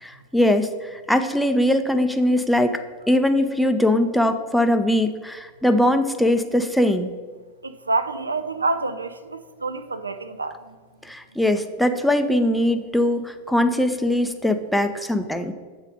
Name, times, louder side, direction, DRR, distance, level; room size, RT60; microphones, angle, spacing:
voice 1, 0.0-2.8 3.1-7.1 11.0-15.5, left 1 dB, ahead, 0.5 m, -21 dB
voice 2, 7.6-10.7, right 3 dB, 80° right, 0.4 m, -27 dB
7.4 x 4.0 x 5.2 m
figure-of-eight pair, 90°, 0 cm